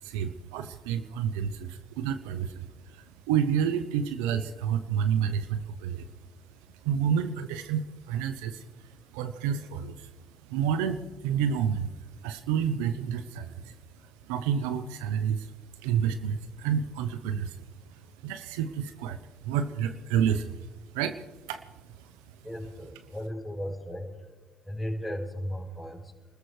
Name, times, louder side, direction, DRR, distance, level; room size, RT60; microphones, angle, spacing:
voice 1, 0.0-6.1 6.7-10.1 10.5-21.6 21.9-22.4, right 8 dB, 80° right, 10 dB, 0.7 m, -30 dB
voice 2, 22.4-24.1 24.6-26.1, equal, ahead, -6 dB, 4.8 m, -35 dB
29.5 x 14.0 x 3.3 m, 1.2 s
hypercardioid pair, 65°, 0 cm